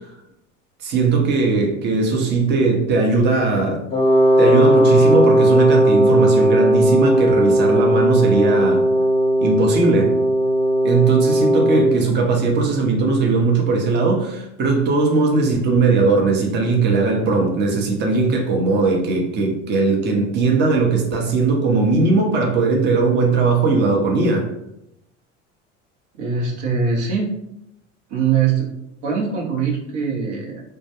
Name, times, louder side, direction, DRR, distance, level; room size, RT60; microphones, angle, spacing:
voice 1, 0.8-3.8 4.4-8.8 9.4-10.1 10.8-24.5, right 3 dB, 30° right, 1 dB, 0.6 m, -18 dB
Wind instrument woodwind instrument, 3.9-12.0, equal, 15° left, 0.6 m, -16 dB
voice 2, 26.2-27.3 28.1-28.7 29.0-30.6, right 6 dB, 75° right, -2 dB, 0.8 m, -22 dB
2.2 x 2.2 x 2.8 m, 0.81 s
hypercardioid pair, 75°, 36 cm